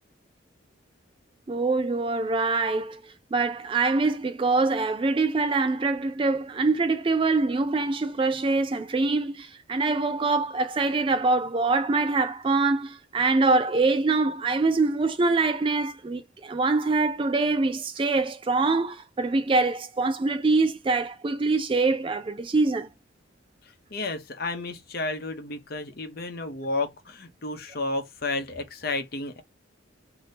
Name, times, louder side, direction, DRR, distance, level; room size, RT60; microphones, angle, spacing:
voice 1, 1.5-22.9, right 3 dB, 25° right, 0.3 m, -24 dB
voice 2, 23.6-29.4, left 2 dB, 50° left, 0.8 m, -32 dB
2.8 x 2.7 x 3.3 m
head